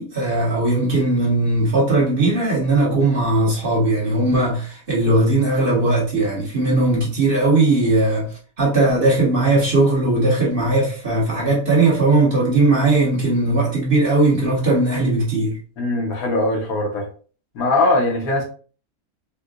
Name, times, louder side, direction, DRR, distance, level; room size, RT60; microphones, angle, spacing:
voice 1, 0.0-15.6, right 2 dB, 40° right, 1.2 m, -18 dB
voice 2, 15.8-17.1 17.5-18.4, left 2 dB, 70° left, 1.2 m, -20 dB
4.5 x 2.2 x 2.4 m
omnidirectional pair, 1.6 m